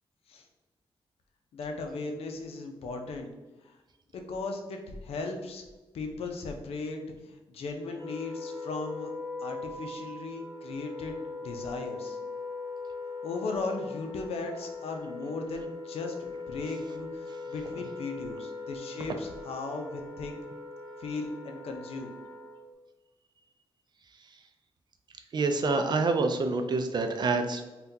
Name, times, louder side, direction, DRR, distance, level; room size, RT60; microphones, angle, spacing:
voice 1, 1.5-3.3 3.6-3.7 4.1-5.7 5.9-9.1 9.4-12.2 13.2-20.4 21.0-22.1, left 3 dB, 85° left, 3 dB, 0.5 m, -37 dB
Wind instrument woodwind instrument, 7.9-22.7, left 3 dB, 55° left, 0.9 m, -41 dB
voice 2, 25.3-27.7, right 3 dB, 50° right, 6 dB, 0.4 m, -27 dB
3.6 x 2.3 x 2.7 m, 1.1 s
cardioid pair, 100°, 10 cm